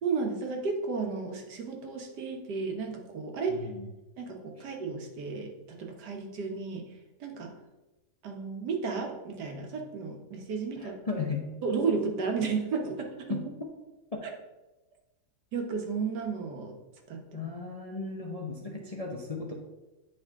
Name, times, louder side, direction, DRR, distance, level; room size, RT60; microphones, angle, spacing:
voice 1, 0.0-3.7 4.2-6.9 7.2-7.5 8.2-11.0 11.6-13.4 15.5-16.8 17.1-17.5, right 5 dB, 85° right, 3 dB, 1.7 m, -33 dB
voice 2, 3.5-3.9 10.8-11.4 13.3-13.4 17.3-19.5, left 4 dB, 35° left, -1 dB, 0.6 m, -35 dB
9.3 x 4.9 x 3.6 m, 1.1 s
omnidirectional pair, 1.7 m